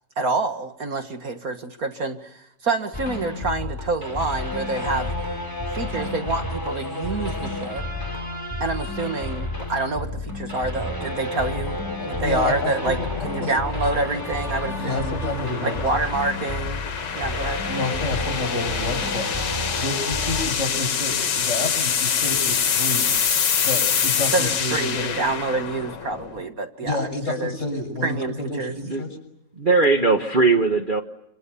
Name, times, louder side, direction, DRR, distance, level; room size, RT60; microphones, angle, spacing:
voice 1, 0.2-5.1 5.7-7.8 8.6-11.8 12.0-13.0 13.2-15.1 15.6-16.8 17.2-17.6 24.3-27.0 27.3-27.5 28.0-28.7, right 3 dB, 55° right, 6 dB, 2.0 m, -27 dB
sound 1, 2.9-20.5, left 1 dB, 10° left, 3.1 m, -30 dB
sound 2, 10.2-26.5, left 7 dB, 80° left, 2.0 m, -27 dB
voice 2, 12.0-13.5 14.8-15.8 17.7-23.1 23.7-25.1 26.8-29.2, left 2 dB, 40° left, 4 dB, 7.2 m, -29 dB
voice 3, 29.6-31.0, right 3 dB, 30° right, 3 dB, 1.4 m, -19 dB
27.5 x 27.5 x 7.0 m, 0.80 s
omnidirectional pair, 1.9 m